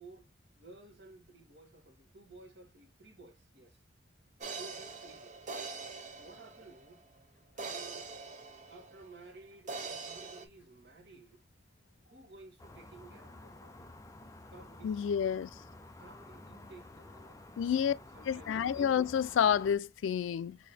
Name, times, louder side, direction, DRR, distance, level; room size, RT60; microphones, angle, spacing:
voice 1, 0.0-3.8 4.6-5.4 6.2-7.0 7.6-8.1 8.7-11.4 12.0-13.9 14.5-15.2 16.0-19.0, right 2 dB, 60° right, 1.4 m, -55 dB
sound 1, 4.4-7.0 7.6-9.3 9.7-10.5, right 4 dB, 40° right, 0.8 m, -43 dB
sound 2, 12.6-19.8, left 2 dB, 15° left, 0.4 m, -51 dB
voice 2, 14.8-15.5 17.6-17.9 18.3-20.6, left 8 dB, 90° left, 0.3 m, -29 dB
4.2 x 2.8 x 3.3 m
head